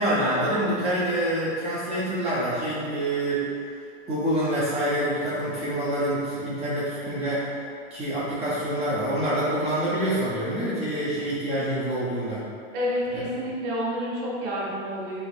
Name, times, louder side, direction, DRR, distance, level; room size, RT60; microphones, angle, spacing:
voice 1, 0.0-3.5 4.1-7.5 7.9-12.4 13.1-13.2, right 1 dB, 15° right, -10 dB, 0.5 m, -26 dB
voice 2, 12.7-15.2, equal, 45° right, -6 dB, 1.1 m, -29 dB
3.3 x 3.1 x 2.5 m, 2.3 s
supercardioid pair, 140°, 37 cm